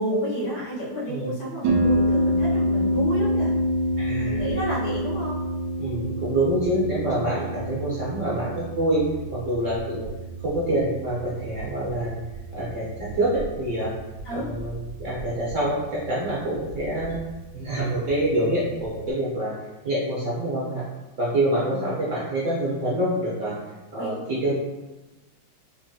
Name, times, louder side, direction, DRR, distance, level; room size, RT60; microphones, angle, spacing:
voice 1, 0.0-3.5 4.2-5.4 14.2-14.5 21.7-21.9 24.0-24.1, equal, 75° left, -9 dB, 2.1 m, -30 dB
voice 2, 1.0-1.4 4.0-4.4 5.8-9.0 9.3-10.1 10.4-12.2 12.5-13.9 14.3-17.2 17.5-19.5 19.8-20.8 21.2-23.5 23.9-24.6, right 1 dB, 55° right, -7 dB, 0.9 m, -26 dB
Harp, 1.6-19.1, equal, 75° right, 1.2 m, -28 dB
4.3 x 2.6 x 2.7 m, 1.1 s
omnidirectional pair, 2.0 m